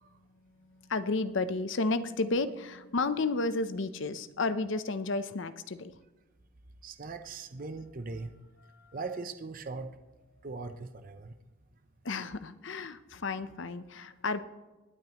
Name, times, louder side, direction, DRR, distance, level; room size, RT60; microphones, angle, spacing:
voice 1, 0.6-5.9 8.7-9.1 12.0-14.4, left 3 dB, 55° left, 12 dB, 0.6 m, -32 dB
voice 2, 6.8-8.3 8.9-9.9 10.4-11.4, right 3 dB, 40° right, 8 dB, 0.6 m, -40 dB
21.0 x 8.9 x 3.0 m, 1.2 s
head